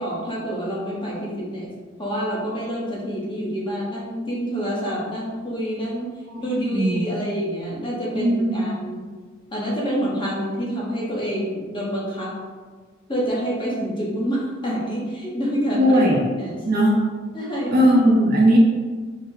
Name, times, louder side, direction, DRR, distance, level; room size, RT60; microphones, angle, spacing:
voice 1, 0.0-1.7 2.0-6.1 6.4-9.0 9.5-12.3 13.1-16.0 16.4-16.6 17.3-17.9, equal, 25° left, -5 dB, 0.9 m, -27 dB
voice 2, 6.3-7.0 8.1-8.7 15.7-16.2 16.6-17.0 17.7-18.6, equal, 45° right, -2 dB, 0.6 m, -18 dB
4.4 x 2.1 x 3.7 m, 1.5 s
head